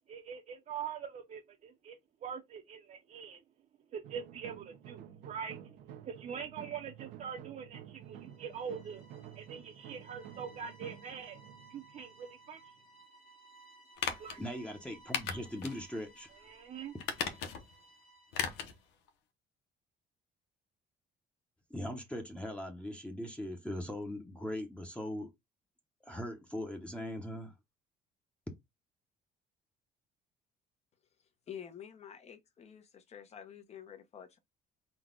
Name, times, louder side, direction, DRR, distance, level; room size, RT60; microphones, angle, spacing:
voice 1, 0.1-3.4 3.9-5.8 6.0-9.0 9.3-11.4 11.7-12.6 14.2-14.4 16.4-17.0, right 7 dB, 50° right, 0.8 m, -43 dB
sound 1, 4.0-12.8, right 10 dB, 80° right, 0.7 m, -51 dB
sound 2, 8.1-18.8, right 2 dB, 65° left, 1.3 m, -60 dB
sound 3, 14.0-14.4 15.1-15.8 16.2-16.3 17.0-17.7 18.3-18.8 19.1-19.2, left 7 dB, 90° left, 0.8 m, -36 dB
voice 2, 14.4-16.3 21.7-25.3 26.0-27.5, left 1 dB, 5° left, 0.9 m, -40 dB
voice 3, 31.5-34.4, left 8 dB, 40° left, 0.9 m, -49 dB
3.9 x 2.3 x 3.7 m
cardioid pair, 110°, 17 cm